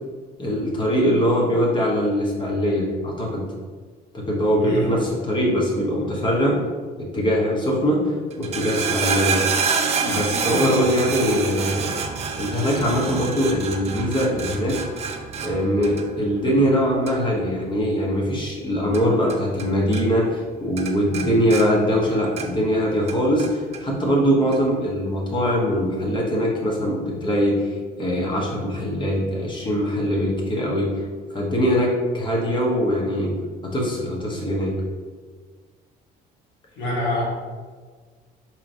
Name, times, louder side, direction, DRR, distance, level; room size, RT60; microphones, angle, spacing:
voice 1, 0.4-3.5 4.1-6.6 7.0-8.1 8.4-9.4 10.0-11.9 12.4-14.8 15.4-27.7 28.0-31.0 31.3-33.3 33.6-34.7, equal, 30° left, -2 dB, 1.0 m, -22 dB
voice 2, 4.6-5.0 36.8-37.2, equal, 85° left, -5 dB, 1.4 m, -25 dB
sound 1, 8.3-19.7 19.9-20.5 20.8-22.7 23.1-23.8 24.5-24.6, right 6 dB, 40° right, 0.4 m, -28 dB
4.6 x 3.0 x 2.6 m, 1.5 s
cardioid pair, 110°, 17 cm